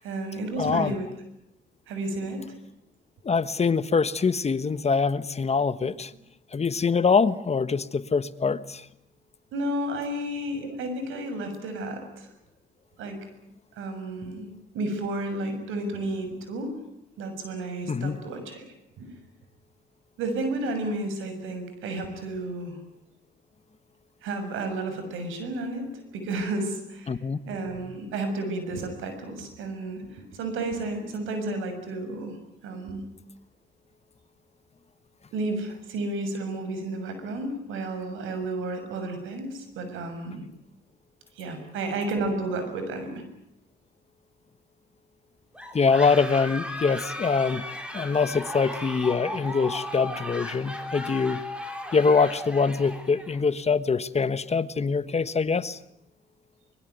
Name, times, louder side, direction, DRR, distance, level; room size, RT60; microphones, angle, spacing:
voice 1, 0.0-1.1 1.9-2.5 5.8-5.9 9.5-12.3 13.0-13.2 13.8-16.7 17.2-18.6 19.0-19.1 20.2-22.8 24.2-27.2 27.5-32.4 32.6-33.1 35.3-40.4 41.4-43.2, right 2 dB, 90° right, 7 dB, 6.7 m, -32 dB
voice 2, 0.6-0.9 3.2-6.1 6.5-8.8 17.9-18.2 27.1-27.4 45.7-47.6 47.9-51.4 51.9-55.8, left 5 dB, 35° left, 14 dB, 1.3 m, -24 dB
sound 1, 45.5-53.4, left 1 dB, 5° right, 4.7 m, -36 dB
24.0 x 21.5 x 9.4 m, 0.80 s
cardioid pair, 90°, 20 cm